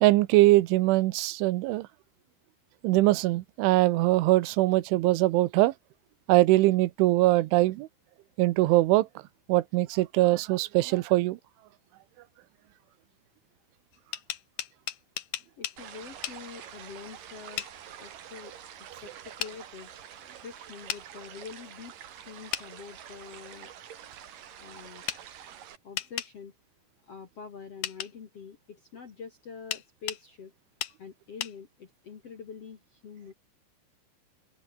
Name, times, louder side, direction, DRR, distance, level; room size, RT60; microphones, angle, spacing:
voice 1, 0.0-1.9 2.8-5.7 6.3-7.9 8.4-9.1 9.5-11.4, right 18 dB, 90° right, 3.3 m, -22 dB
sound 1, 13.9-15.8 16.2-16.4 17.6-17.7 19.4-19.5 20.9-21.0 22.5-22.7 25.1-25.2 26.0-26.3 27.8-28.1 29.7-30.2 30.8-31.0 31.4-31.5, left 12 dB, 75° left, 1.8 m, -34 dB
voice 2, 15.6-17.7 18.0-18.5 18.8-19.9 20.4-21.9 22.2-23.7 24.6-25.0 25.8-26.5 27.0-30.5 31.0-33.3, left 6 dB, 50° left, 1.8 m, -45 dB
sound 2, 15.8-25.8, right 9 dB, 55° right, 3.1 m, -47 dB
open air
omnidirectional pair, 5.6 m